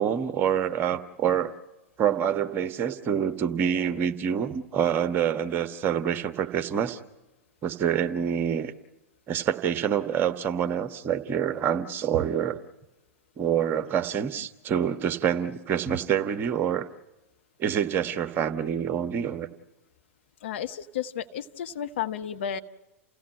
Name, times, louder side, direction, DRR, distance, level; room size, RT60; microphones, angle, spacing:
voice 1, 0.0-1.5 2.0-7.0 7.6-8.7 9.3-12.6 13.4-16.9 17.6-19.5, right 8 dB, 25° right, 8 dB, 1.3 m, -26 dB
voice 2, 20.4-22.6, left 9 dB, 55° left, 9 dB, 1.1 m, -32 dB
29.5 x 16.5 x 8.4 m, 1.1 s
figure-of-eight pair, 100°, 8 cm